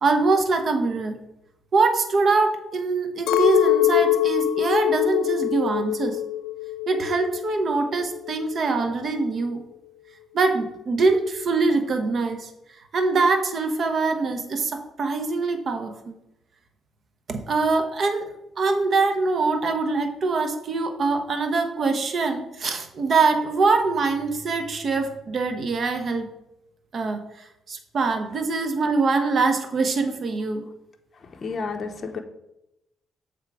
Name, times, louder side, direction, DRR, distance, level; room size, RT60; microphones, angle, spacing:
voice 1, 0.0-1.2 1.7-6.2 6.9-9.6 10.3-12.5 12.9-16.2 17.3-18.3 18.6-26.3 26.9-30.6, right 3 dB, 50° right, 6 dB, 0.9 m, -23 dB
Chink clink, 3.3-7.6 7.9-8.7, left 13 dB, 90° left, 0.3 m, -24 dB
voice 2, 31.1-32.2, left 4 dB, 40° left, 4 dB, 0.6 m, -32 dB
7.1 x 3.6 x 4.7 m, 0.89 s
cardioid pair, 90°, 0 cm